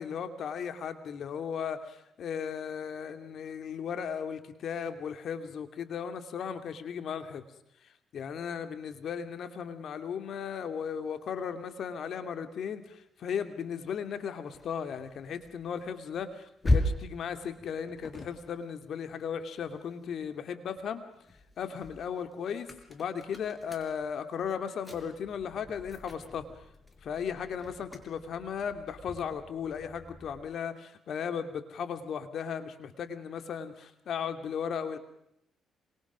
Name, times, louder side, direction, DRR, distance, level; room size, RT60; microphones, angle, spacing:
voice 1, 0.0-7.4 8.1-21.0 21.6-26.4 27.0-35.0, left 7 dB, 65° left, 9 dB, 2.7 m, -36 dB
sound 1, 13.8-20.3 20.7-30.5, left 1 dB, 20° left, 5.2 m, -38 dB
27.0 x 25.0 x 6.3 m, 0.79 s
cardioid pair, 90°, 0 cm